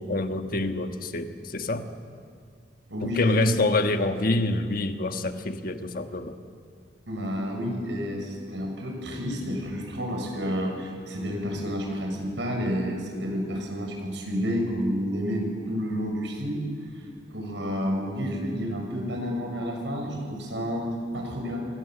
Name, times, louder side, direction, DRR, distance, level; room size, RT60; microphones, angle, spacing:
voice 1, 0.0-1.9 3.0-6.4, left 2 dB, 50° left, 7 dB, 1.4 m, -26 dB
voice 2, 2.9-3.4 7.1-16.6 17.3-21.7, equal, 75° right, 2 dB, 6.6 m, -30 dB
27.5 x 25.0 x 7.7 m, 2.2 s
head